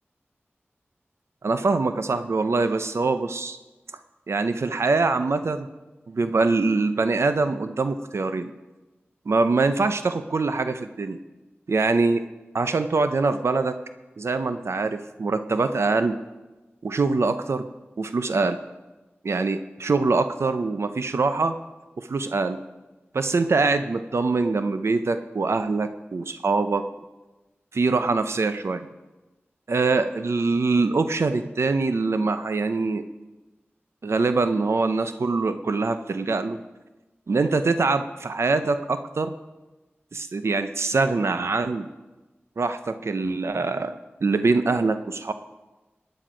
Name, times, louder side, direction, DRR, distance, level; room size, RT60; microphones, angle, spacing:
voice 1, 1.4-3.6 4.3-5.7 6.1-8.5 9.3-11.2 11.7-12.2 12.5-13.8 14.2-16.2 16.8-17.7 18.0-18.6 19.2-21.6 22.0-22.6 23.1-26.8 27.7-28.9 29.7-33.1 34.0-36.6 37.3-39.3 40.1-41.9 42.6-43.9 44.2-45.3, right 3 dB, 80° right, 10 dB, 0.6 m, -24 dB
16.5 x 9.8 x 5.1 m, 1.1 s
cardioid pair, 45°, 4 cm